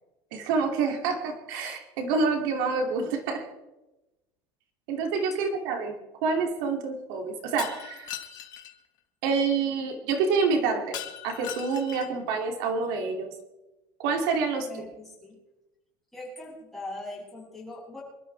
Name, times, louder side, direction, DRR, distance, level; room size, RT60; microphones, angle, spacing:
voice 1, 0.3-3.4 4.9-5.9 6.2-8.1 9.2-11.0 11.2-13.3 14.0-14.7, right 4 dB, 80° right, 3 dB, 2.7 m, -27 dB
Shatter, 7.6-8.7 10.9-12.2, left 10 dB, 35° left, 1.7 m, -39 dB
voice 2, 14.6-15.4 16.1-18.0, left 2 dB, ahead, -7 dB, 7.0 m, -41 dB
27.5 x 13.0 x 3.4 m, 1.0 s
cardioid pair, 180°, 11 cm